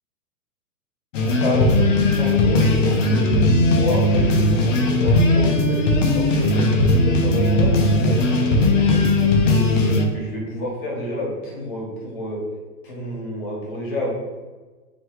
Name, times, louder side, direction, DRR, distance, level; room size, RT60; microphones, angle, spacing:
sound 1, 1.1-10.1, left 2 dB, 50° left, 0.8 m, -18 dB
voice 1, 1.4-1.8 2.1-8.2 8.6-9.7 10.1-12.4 12.8-14.1, left 1 dB, 35° left, -3 dB, 1.5 m, -29 dB
3.2 x 3.0 x 4.7 m, 1.3 s
hypercardioid pair, 160°, 47 cm